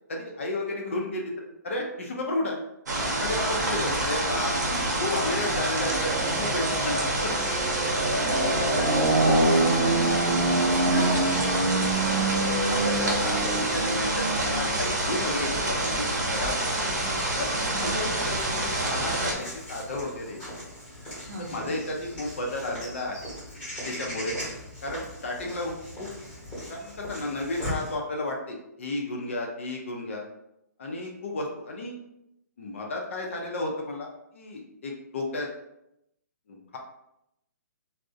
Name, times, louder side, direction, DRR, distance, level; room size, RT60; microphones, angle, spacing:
voice 1, 0.1-2.6 3.1-7.0 7.2-7.3 7.6-7.7 8.4-8.9 10.9-11.3 12.7-14.2 14.5-16.1 16.3-16.7 17.4-17.5 17.8-20.4 21.5-23.2 23.8-24.3 24.8-25.7 26.0-26.1 26.7-30.3 30.8-31.9 32.6-35.5 36.5-36.8, left 2 dB, 50° left, 0 dB, 0.4 m, -33 dB
sound 1, 2.9-19.3, right 2 dB, 90° right, 0.7 m, -25 dB
voice 2, 3.7-4.5 8.2-11.2 17.7-18.3 21.3-21.8, right 2 dB, 45° right, 0 dB, 0.6 m, -36 dB
Walk footsteps / Bird vocalization bird call bird song, 18.0-27.9, left 1 dB, 10° left, 0.8 m, -39 dB
2.4 x 2.0 x 2.6 m, 0.82 s
hypercardioid pair, 175°, 9 cm